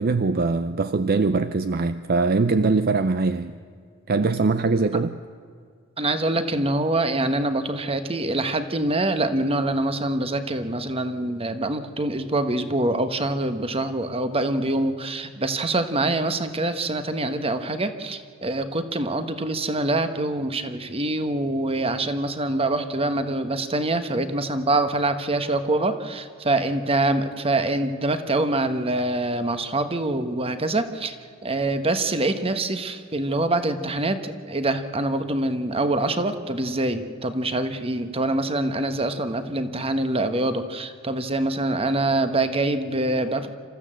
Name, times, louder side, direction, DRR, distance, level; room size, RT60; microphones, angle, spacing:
voice 1, 0.0-3.5 4.1-5.2, right 3 dB, 50° right, 0.5 m, -22 dB
voice 2, 6.0-31.1 31.4-43.5, right 2 dB, 30° right, 1.2 m, -25 dB
27.0 x 14.5 x 7.6 m
head